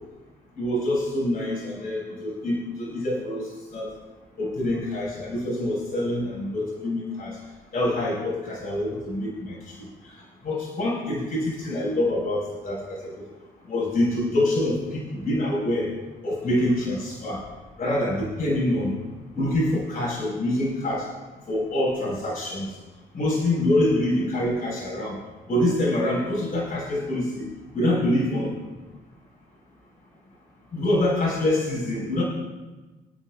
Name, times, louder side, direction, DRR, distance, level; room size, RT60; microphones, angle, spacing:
voice 1, 0.5-3.9 4.4-7.4 7.7-13.2 13.7-15.9 16.2-17.4 17.8-18.9 19.3-21.1 21.5-22.7 23.1-25.2 25.5-27.5 27.7-28.6 30.7-32.2, left 1 dB, 45° left, -4 dB, 4.4 m, -26 dB
26.0 x 8.7 x 2.4 m, 1.2 s
cardioid pair, 90°, 20 cm